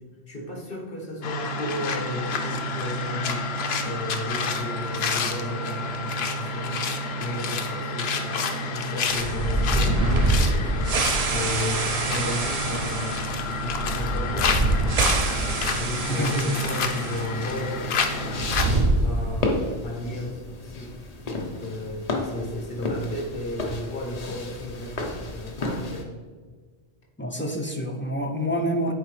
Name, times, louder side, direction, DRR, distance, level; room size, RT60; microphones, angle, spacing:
voice 1, 0.3-3.5 3.8-6.9 7.2-10.9 11.3-17.9 18.2-20.9 21.3-26.1, left 1 dB, 60° left, -1 dB, 1.5 m, -34 dB
sound 1, 1.2-18.6, left 3 dB, 75° left, 0.9 m, -29 dB
sound 2, 9.1-17.3 17.5-17.6 18.3-19.6, right 2 dB, 50° right, 0.5 m, -25 dB
sound 3, 15.3-26.0, left 2 dB, 45° left, 0.7 m, -34 dB
voice 2, 16.1-16.5 27.2-28.9, equal, 20° left, 2 dB, 0.3 m, -27 dB
8.6 x 3.8 x 3.2 m, 1.5 s
omnidirectional pair, 1.1 m